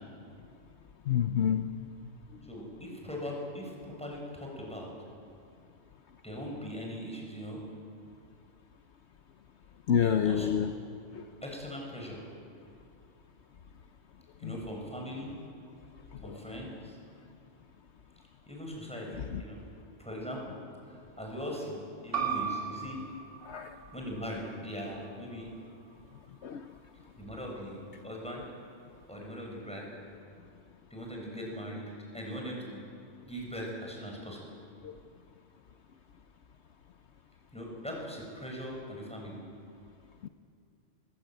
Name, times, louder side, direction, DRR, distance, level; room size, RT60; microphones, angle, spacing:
voice 1, 1.1-1.7 9.9-10.7 11.1-11.2 14.4-14.6 16.2-16.4 19.1-19.4 23.4-23.8 26.4-26.7 34.8-35.0 40.2-40.3, left 8 dB, 65° left, 8 dB, 1.0 m, -28 dB
voice 2, 2.5-4.9 6.2-7.6 10.0-10.7 11.4-12.2 14.4-15.3 16.2-17.0 18.5-19.6 20.0-20.6 20.9-23.0 23.9-25.5 27.2-28.4 29.1-29.9 30.9-32.8 33.3-34.4 37.5-39.4, equal, 5° left, -2 dB, 7.1 m, -40 dB
sound 1, 22.1-27.3, right 7 dB, 65° right, 3.8 m, -39 dB
25.0 x 21.5 x 9.3 m, 2.5 s
omnidirectional pair, 1.3 m